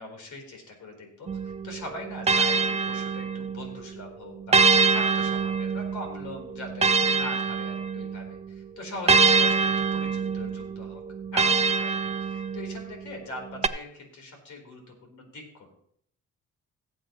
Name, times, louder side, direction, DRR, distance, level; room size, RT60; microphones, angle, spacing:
voice 1, 0.0-11.0 11.3-15.8, left 2 dB, 70° left, 2 dB, 4.1 m, -41 dB
sound 1, 1.3-3.7 4.5-8.3 9.1-12.8 13.6-13.7, right 4 dB, 20° right, 0.5 m, -24 dB
18.0 x 7.7 x 3.1 m, 0.68 s
cardioid pair, 90°, 30 cm